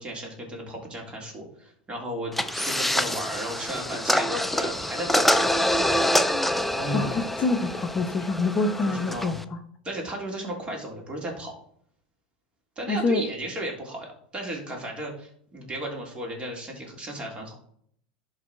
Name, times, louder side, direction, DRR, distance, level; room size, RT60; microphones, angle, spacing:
voice 1, 0.0-5.8 6.7-7.1 8.8-9.4 9.8-11.6 12.8-17.5, right 1 dB, 20° right, 0 dB, 3.4 m, -35 dB
sound 1, 2.3-9.4, left 1 dB, 5° left, 0.6 m, -26 dB
voice 2, 6.9-9.6 12.9-13.2, left 3 dB, 35° left, 6 dB, 0.9 m, -26 dB
11.0 x 4.1 x 4.4 m, 0.64 s
hypercardioid pair, 95°, 5 cm